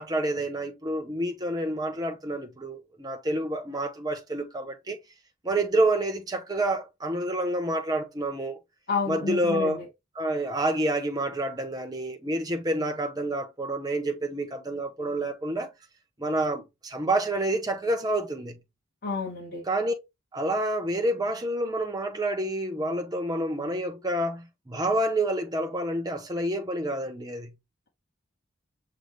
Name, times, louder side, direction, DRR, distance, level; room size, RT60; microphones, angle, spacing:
voice 1, 0.0-5.0 5.4-8.6 9.1-9.8 10.2-15.7 16.2-18.6 19.7-19.9 20.3-27.5, right 1 dB, 20° right, 0.7 m, -28 dB
voice 2, 8.9-9.9 19.0-19.6, left 4 dB, 45° left, 1.3 m, -30 dB
6.5 x 2.2 x 3.1 m
head